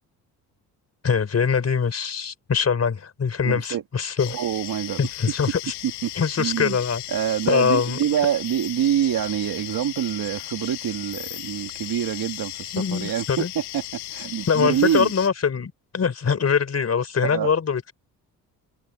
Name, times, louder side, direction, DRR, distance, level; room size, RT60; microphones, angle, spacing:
voice 1, 1.0-4.4 5.0-5.7 6.2-7.0 7.5-8.0 12.7-13.5 14.5-17.9, left 6 dB, 40° left, 4.2 m, -23 dB
voice 2, 3.4-3.8 4.3-5.0 5.8-6.1 6.4-6.8 7.1-13.8 14.1-15.1 17.2-17.5, right 10 dB, 60° right, 2.3 m, -26 dB
sound 1, 4.2-15.3, left 17 dB, 85° left, 1.3 m, -36 dB
supercardioid pair, 75°, 39 cm